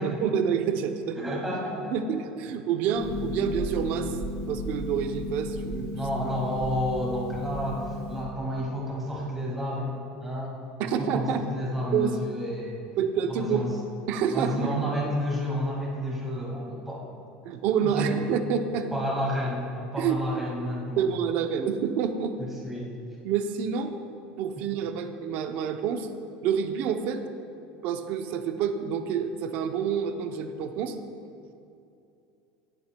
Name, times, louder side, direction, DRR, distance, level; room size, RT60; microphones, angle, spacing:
voice 1, 0.0-1.2 1.9-4.1 4.5-5.9 10.8-11.5 11.9-12.2 13.0-13.7 14.1-14.7 17.4-18.9 20.0-20.2 21.0-22.3 23.2-24.0 24.4-26.1 26.4-27.2 27.8-31.0, right 7 dB, 50° right, 7 dB, 0.6 m, -28 dB
voice 2, 1.2-1.9 5.9-10.6 11.0-12.8 13.3-13.7 14.3-17.1 17.8-18.2 18.9-21.0 22.4-22.9 24.6-24.7, equal, 5° right, -4 dB, 1.9 m, -31 dB
Harp, 3.0-8.2, left 1 dB, 80° left, 2.2 m, -34 dB
17.5 x 6.9 x 2.2 m, 2.7 s
cardioid pair, 165°, 4 cm